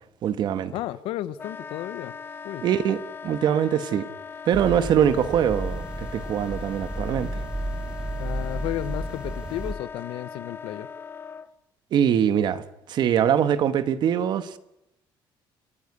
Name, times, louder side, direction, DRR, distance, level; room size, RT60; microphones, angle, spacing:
voice 1, 0.2-0.7 2.6-4.1 4.4-7.4 11.9-12.6 12.9-14.6, right 9 dB, 55° right, 1.2 m, -23 dB
voice 2, 0.7-2.1 2.4-2.6 8.2-10.9, left 14 dB, 85° left, 0.8 m, -33 dB
Wind instrument woodwind instrument, 1.4-11.5, left 6 dB, 25° left, 0.7 m, -40 dB
sound 1, 4.5-9.7, right 1 dB, 10° right, 1.1 m, -33 dB
30.0 x 10.0 x 9.7 m
cardioid pair, 140°, 9 cm